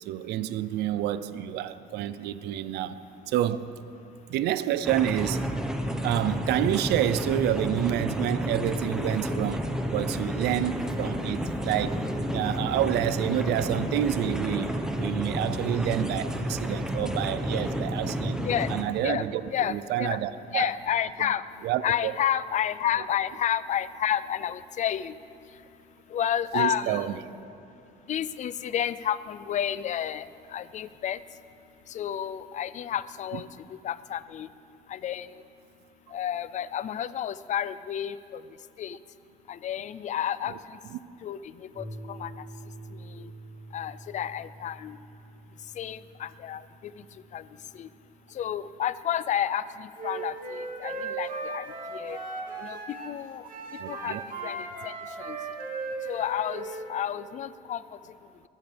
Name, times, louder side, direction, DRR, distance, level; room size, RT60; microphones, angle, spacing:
voice 1, 0.0-3.0 3.3-3.7 4.3-5.4 6.0-9.6 9.9-12.0 12.3-18.4 18.7-19.4 19.7-20.7 21.6-22.1 26.5-27.2 40.5-40.6 40.9-41.0 53.8-54.2, right 12 dB, 80° right, 13 dB, 0.5 m, -28 dB
sound 1, 4.8-18.8, equal, 5° right, 1.2 m, -30 dB
voice 2, 18.4-18.7 19.0-20.2 20.5-21.4 21.8-25.1 26.1-27.1 28.1-30.3 30.5-31.2 31.9-33.5 33.8-34.5 34.9-35.3 36.1-38.4 38.8-39.0 39.5-40.5 41.2-42.3 43.2-43.3 43.7-45.0 45.8-46.6 47.3-47.4 47.8-47.9 48.3-51.7 51.9-52.2 52.6-53.4 53.9-54.2 54.4-54.9 55.2-55.4 56.1-56.6 56.9-57.8, left 10 dB, 45° left, 16 dB, 0.5 m, -30 dB
sound 2, 41.7-48.8, right 1 dB, 35° right, 2.5 m, -47 dB
Wind instrument woodwind instrument, 50.0-53.2 53.5-56.9, right 3 dB, 55° right, 2.7 m, -36 dB
22.0 x 13.5 x 3.5 m, 2.6 s
cardioid pair, 110°, 17 cm